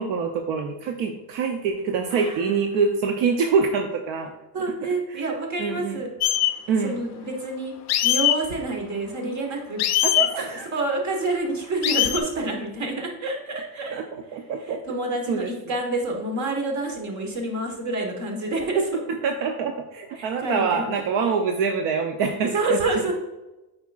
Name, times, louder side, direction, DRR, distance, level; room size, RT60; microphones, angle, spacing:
voice 1, 0.0-4.3 5.1-5.2 5.6-6.0 6.7-7.1 10.0-10.7 13.9-14.0 14.3-14.8 15.3-15.5 19.1-22.8, right 5 dB, 70° right, 4 dB, 0.7 m, -25 dB
voice 2, 2.1-2.8 4.5-6.1 6.5-7.7 8.0-9.8 10.2-10.3 10.7-14.0 14.3-19.0 20.1-20.9 22.5-23.1, right 2 dB, 40° right, 2 dB, 1.4 m, -28 dB
sound 1, 6.2-6.5 7.9-8.4 9.8-10.3 11.8-12.2, left 13 dB, 40° left, 0.5 m, -20 dB
8.2 x 4.9 x 2.4 m, 1.0 s
cardioid pair, 140°, 45 cm